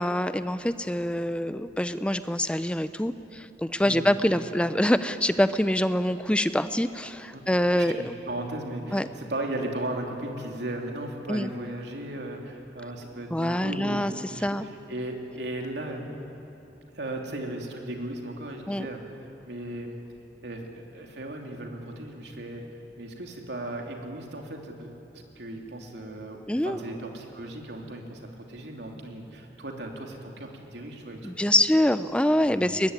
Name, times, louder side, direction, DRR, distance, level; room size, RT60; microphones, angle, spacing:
voice 1, 0.0-8.1 8.9-9.1 11.3-11.5 13.3-14.7 18.7-18.9 26.5-26.8 31.2-32.9, left 1 dB, 5° left, 12 dB, 0.6 m, -25 dB
voice 2, 7.7-16.1 16.9-19.0 19.4-20.0 20.4-22.6 23.0-31.5 32.4-32.8, right 1 dB, 75° right, 1 dB, 3.1 m, -36 dB
23.0 x 20.5 x 9.8 m, 3.0 s
head